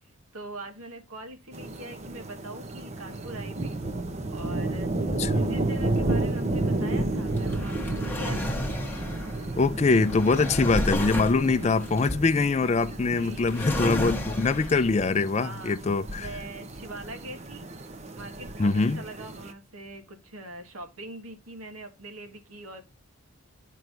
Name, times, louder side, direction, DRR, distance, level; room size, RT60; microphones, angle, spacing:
voice 1, 0.3-8.6 13.1-13.6 15.4-15.8 16.2-17.7 18.1-22.8, right 1 dB, 80° right, 1.5 m, -42 dB
sound 1, 1.5-19.5, right 2 dB, 30° right, 0.7 m, -32 dB
voice 2, 5.2-5.6 9.6-16.3 18.6-19.0, left 3 dB, 30° left, 0.4 m, -23 dB
Drawer open or close, 5.8-15.1, left 1 dB, 10° left, 1.0 m, -33 dB
11.0 x 4.6 x 2.6 m
head